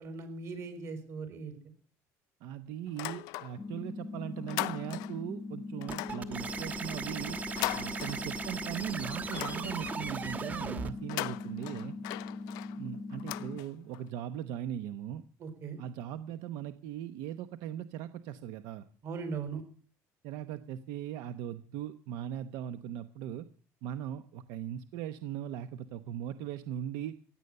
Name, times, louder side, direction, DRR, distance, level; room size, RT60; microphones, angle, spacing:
voice 1, 0.0-1.6 15.4-15.8 19.0-19.6, right 5 dB, 45° right, 9 dB, 4.2 m, -39 dB
voice 2, 2.4-7.4 7.7-12.0 12.8-15.2 15.8-18.8 20.2-23.4 23.8-27.2, right 10 dB, 80° right, 11 dB, 0.9 m, -39 dB
sound 1, 2.9-3.8 4.1-5.3 5.8-8.6 9.0-10.1 10.9-14.0, left 20 dB, 80° left, 0.6 m, -40 dB
sound 2, 3.6-13.6, left 3 dB, 25° left, 0.7 m, -41 dB
sound 3, 5.9-10.9, right 5 dB, 25° right, 1.2 m, -38 dB
16.5 x 9.9 x 6.6 m, 0.42 s
cardioid pair, 140°, 7 cm